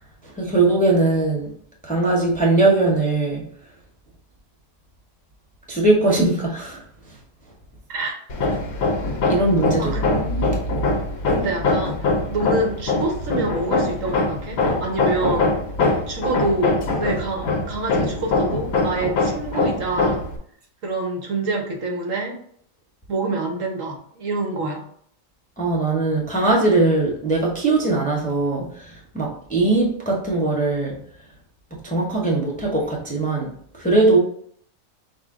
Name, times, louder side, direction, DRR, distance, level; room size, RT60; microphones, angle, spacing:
voice 1, 0.2-1.5 1.8-3.4 5.7-7.2 9.3-10.2 25.6-31.0 31.8-33.5 33.8-34.2, right 2 dB, 10° left, -2 dB, 0.7 m, -20 dB
voice 2, 7.9-8.2 9.8-10.5 11.3-12.0 12.3-15.6 15.9-20.2 20.8-22.4 23.1-24.8, right 2 dB, 70° right, 1 dB, 1.4 m, -26 dB
Hammer, 8.3-20.4, left 3 dB, 90° left, 1.3 m, -23 dB
5.9 x 2.1 x 3.6 m, 0.62 s
omnidirectional pair, 1.4 m